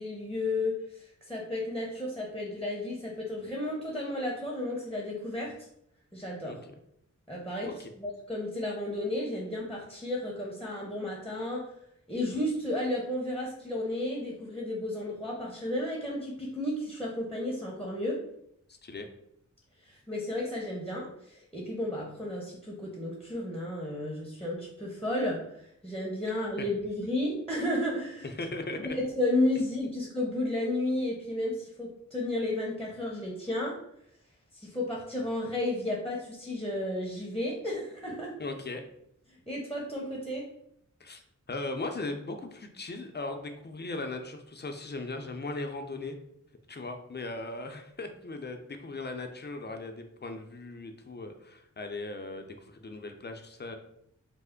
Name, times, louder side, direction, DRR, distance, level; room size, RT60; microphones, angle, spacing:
voice 1, 0.0-5.5 6.1-6.6 7.3-11.7 12.1-18.2 19.9-28.3 28.8-33.8 34.5-38.3 39.5-40.5, left 1 dB, 5° left, -3 dB, 0.9 m, -33 dB
voice 2, 6.4-6.8 7.6-7.9 18.8-19.1 28.2-28.8 38.4-38.8 41.0-41.2 41.5-46.2 46.7-53.8, left 2 dB, 35° left, 5 dB, 0.5 m, -38 dB
3.2 x 2.0 x 3.7 m, 0.73 s
cardioid pair, 55°, 30 cm